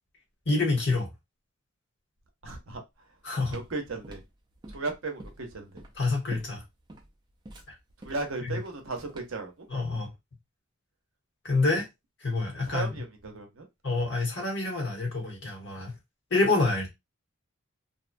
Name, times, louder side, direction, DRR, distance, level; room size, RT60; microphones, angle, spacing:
voice 1, 0.5-1.1 3.2-3.6 6.0-6.6 7.7-7.8 8.4-8.6 9.7-10.1 11.4-11.9 12.2-13.0 13.8-15.9 16.3-16.9, left 3 dB, 55° left, 1.1 m, -27 dB
voice 2, 2.4-2.8 3.5-4.2 4.7-5.8 8.0-9.7 12.6-13.7, right 3 dB, 65° right, 0.7 m, -35 dB
sound 1, 3.0-9.5, right 1 dB, 20° right, 0.4 m, -48 dB
2.7 x 2.2 x 2.5 m
head